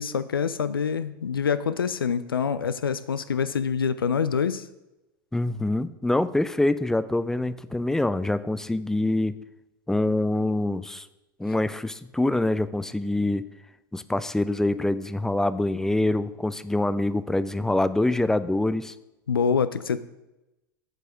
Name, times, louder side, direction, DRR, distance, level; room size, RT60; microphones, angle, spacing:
voice 1, 0.0-4.6 19.3-20.0, left 6 dB, 85° left, 14 dB, 0.4 m, -26 dB
voice 2, 5.3-9.4 9.9-11.1 11.4-13.5 13.9-18.9, left 2 dB, 5° left, 14 dB, 0.4 m, -25 dB
7.8 x 4.8 x 6.0 m, 0.96 s
hypercardioid pair, 85°, 12 cm